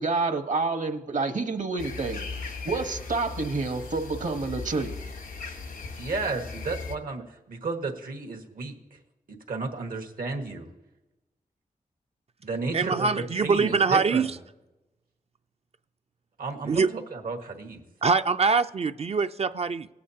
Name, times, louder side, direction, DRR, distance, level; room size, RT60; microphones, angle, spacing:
voice 1, 0.0-4.9, right 3 dB, 60° right, 7 dB, 1.1 m, -29 dB
sound 1, 1.8-6.9, left 4 dB, 85° left, 1.2 m, -38 dB
voice 2, 6.0-8.7 9.3-10.7 12.4-14.3 16.4-17.8, right 3 dB, 80° right, 3 dB, 1.4 m, -33 dB
voice 3, 12.7-14.3 16.6-16.9 18.0-19.9, right 4 dB, 45° right, 10 dB, 0.4 m, -23 dB
18.0 x 8.5 x 2.8 m, 0.99 s
cardioid pair, 65°, 14 cm